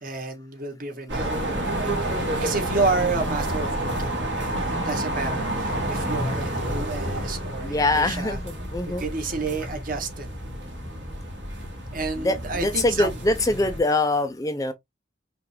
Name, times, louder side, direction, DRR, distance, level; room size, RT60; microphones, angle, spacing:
voice 1, 0.0-8.4 9.0-10.3 11.9-13.1, right 4 dB, 45° right, 1.3 m, -30 dB
sound 1, 1.1-13.8, right 1 dB, 65° right, 1.9 m, -29 dB
voice 2, 7.6-9.0 12.1-14.7, left 2 dB, 15° left, 0.5 m, -24 dB
5.7 x 2.4 x 3.3 m
head